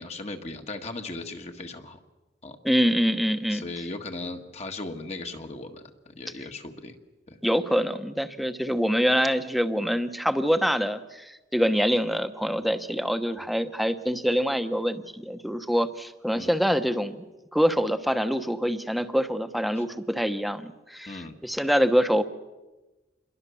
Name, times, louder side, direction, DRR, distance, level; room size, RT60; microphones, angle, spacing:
voice 1, 0.0-2.0 2.4-2.6 3.5-7.0 7.3-7.4 16.3-16.5 19.7-19.8 21.1-21.4, left 2 dB, 35° left, 5 dB, 1.6 m, -37 dB
voice 2, 2.6-3.6 7.4-17.2 17.5-22.2, equal, ahead, 9 dB, 1.0 m, -25 dB
28.0 x 22.0 x 7.1 m, 1.2 s
head